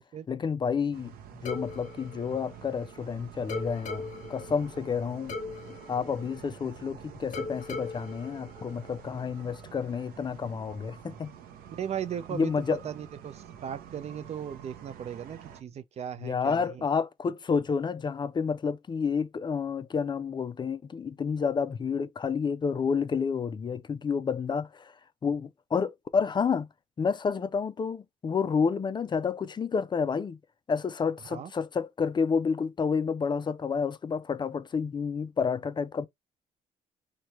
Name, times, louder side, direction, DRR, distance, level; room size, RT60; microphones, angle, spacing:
voice 1, 0.3-1.1 1.4-5.4 5.7-11.3 12.3-12.8 16.2-24.9 25.2-26.7 27.0-30.4 30.7-36.1, left 6 dB, 30° left, 0.4 m, -30 dB
sound 1, 0.9-15.6, right 9 dB, 85° right, 0.7 m, -48 dB
sound 2, 1.5-3.0 3.5-6.9 7.3-9.3, left 3 dB, 60° left, 1.1 m, -40 dB
voice 2, 11.8-16.8 31.3-31.5, right 9 dB, 45° right, 0.5 m, -37 dB
3.2 x 2.3 x 4.2 m
cardioid pair, 95°, 15 cm